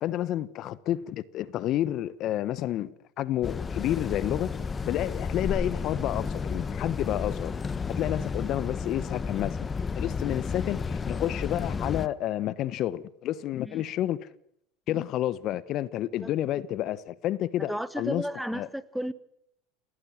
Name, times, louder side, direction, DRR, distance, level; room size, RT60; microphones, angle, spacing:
voice 1, 0.0-4.5 4.8-7.5 7.9-9.7 10.0-14.2 14.9-18.3 18.5-18.7, left 13 dB, 50° left, 1.2 m, -30 dB
sound 1, 3.4-12.1, left 5 dB, 25° left, 1.2 m, -32 dB
voice 2, 17.7-19.1, equal, ahead, 1.6 m, -33 dB
30.0 x 17.5 x 7.6 m
hypercardioid pair, 90°, 0 cm